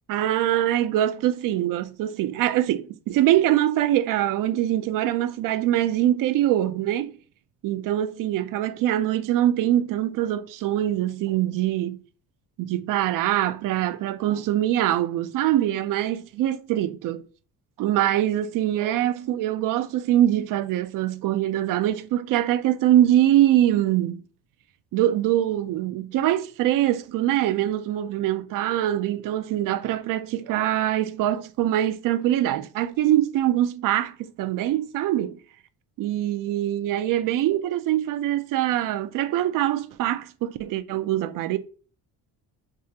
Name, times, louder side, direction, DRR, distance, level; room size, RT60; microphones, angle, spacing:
voice 1, 0.1-7.1 7.6-12.0 12.6-17.2 17.8-24.2 24.9-35.3 36.0-41.6, right 12 dB, 60° right, 0.5 m, -23 dB
4.7 x 2.4 x 2.7 m
cardioid pair, 165°, 38 cm